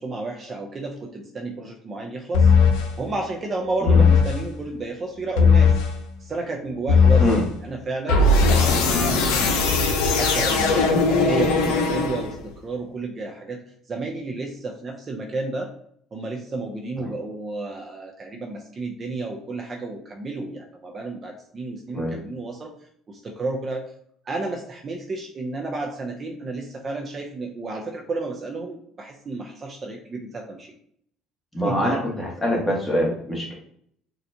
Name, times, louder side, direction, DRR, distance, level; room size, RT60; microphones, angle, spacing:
voice 1, 0.0-2.5 3.0-5.8 6.2-7.3 7.6-9.5 10.1-13.6 13.9-15.7 16.1-22.7 23.1-23.8 24.2-30.7 31.6-32.1, right 3 dB, 35° right, 2 dB, 0.5 m, -32 dB
sound 1, 2.3-2.9 3.9-4.4 5.4-5.9 6.9-7.4 8.1-12.5, left 4 dB, 85° left, 0.6 m, -18 dB
voice 2, 31.5-33.5, left 1 dB, 10° left, -3 dB, 1.3 m, -24 dB
4.2 x 2.4 x 2.7 m, 0.66 s
cardioid pair, 100°, 0 cm